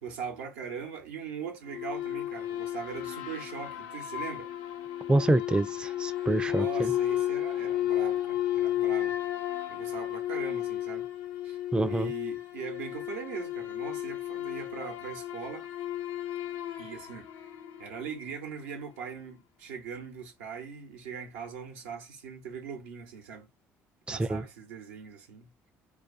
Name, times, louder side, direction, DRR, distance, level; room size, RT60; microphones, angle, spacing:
voice 1, 0.0-4.5 6.4-9.2 9.7-11.1 11.4-11.6 11.9-15.7 16.8-17.5 17.8-23.5 24.1-25.5, right 6 dB, 85° right, 0.7 m, -41 dB
sound 1, 1.7-18.3, left 12 dB, 75° left, 0.5 m, -33 dB
voice 2, 5.1-6.9 11.7-12.1 24.1-24.4, right 2 dB, 15° right, 0.3 m, -27 dB
2.4 x 2.2 x 2.5 m
hypercardioid pair, 60°, 7 cm